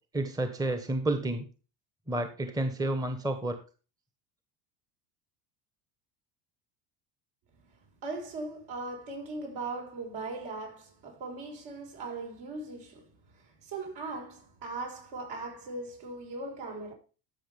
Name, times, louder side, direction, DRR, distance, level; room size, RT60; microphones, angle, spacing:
voice 1, 0.1-1.5 2.1-3.6, right 1 dB, 10° right, 1.1 m, -30 dB
voice 2, 7.6-16.9, right 3 dB, 60° right, 5.4 m, -39 dB
13.0 x 6.0 x 3.4 m
supercardioid pair, 110°, 49 cm